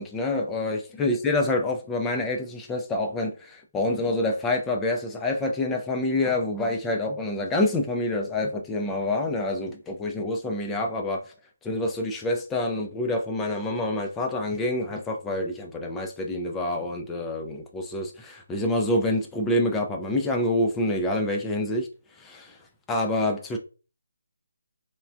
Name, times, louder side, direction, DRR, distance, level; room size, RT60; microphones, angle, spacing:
voice 1, 0.0-11.2 11.6-21.9 22.2-22.6 22.9-23.6, left 2 dB, 10° left, 0.3 m, -27 dB
3.1 x 2.2 x 2.4 m
figure-of-eight pair, 155°, 0 cm